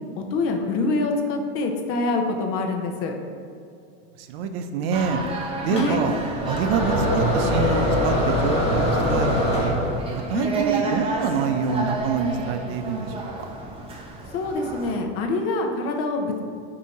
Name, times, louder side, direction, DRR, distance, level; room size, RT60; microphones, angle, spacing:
voice 1, 0.2-3.1 5.7-6.0 10.3-10.5 14.3-16.4, left 3 dB, 45° left, 3 dB, 0.6 m, -25 dB
voice 2, 4.2-5.2 5.6-6.2 6.4-9.7 10.1-13.1, right 5 dB, 65° right, 7 dB, 0.5 m, -26 dB
sound 1, 4.9-14.9, right 3 dB, 20° right, 0.6 m, -32 dB
sound 2, 5.8-10.2, equal, 20° left, 1.2 m, -23 dB
4.1 x 2.8 x 4.7 m, 2.3 s
supercardioid pair, 130°, 32 cm